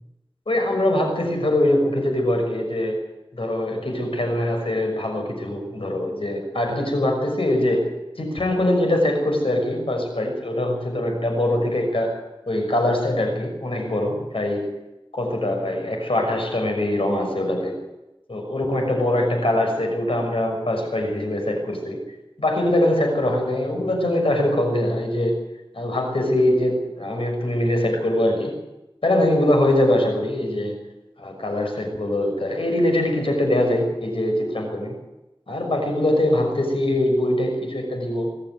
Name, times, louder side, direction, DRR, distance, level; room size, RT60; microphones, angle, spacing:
voice 1, 0.5-3.0 3.3-14.7 15.1-17.8 18.3-22.0 22.4-25.4 25.7-28.5 29.0-30.7 31.2-34.9 35.5-38.3, left 1 dB, 90° left, 3 dB, 6.1 m, -22 dB
24.0 x 13.5 x 9.6 m, 0.98 s
wide cardioid pair, 45°, 9 cm